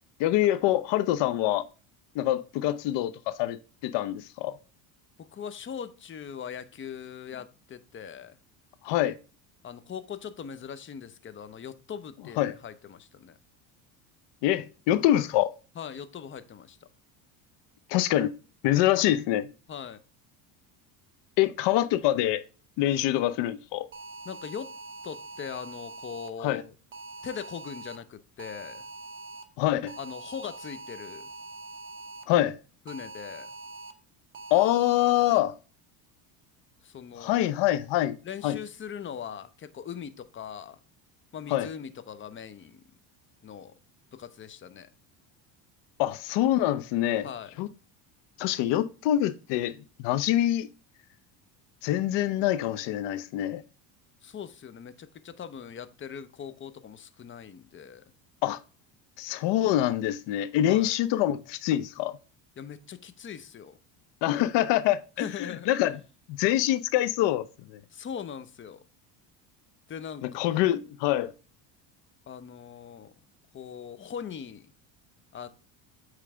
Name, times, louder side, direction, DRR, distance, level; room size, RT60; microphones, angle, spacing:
voice 1, 0.2-1.6 2.1-4.6 8.8-9.2 12.4-12.5 14.4-15.5 17.9-18.3 18.6-19.5 21.4-22.4 22.8-23.9 26.4-26.6 29.6-29.9 32.3-32.6 34.5-35.5 37.2-38.2 38.4-38.6 41.5-41.7 46.0-47.3 47.6-47.7 48.4-50.7 51.8-53.6 58.4-58.6 59.2-62.2 64.2-66.0 66.3-67.8 70.2-71.3, left 13 dB, 60° left, 0.7 m, -25 dB
voice 2, 5.2-8.4 9.6-13.4 15.8-16.9 19.7-20.0 24.2-24.7 25.0-26.7 27.2-28.9 30.0-31.3 32.9-33.5 36.8-37.5 38.2-40.8 41.3-42.8 43.4-43.7 44.1-44.9 47.2-47.5 54.2-58.0 60.7-60.9 62.6-63.8 65.2-65.7 67.9-68.8 69.9-70.2 72.3-73.1 73.5-74.7 75.3-75.5, left 7 dB, 25° left, 0.6 m, -40 dB
sound 1, 23.9-26.3 26.9-28.0 28.4-29.4 29.9-32.2 32.9-33.9 34.3-35.4, right 3 dB, 25° right, 0.8 m, -43 dB
8.5 x 3.3 x 3.3 m
supercardioid pair, 95°, 47 cm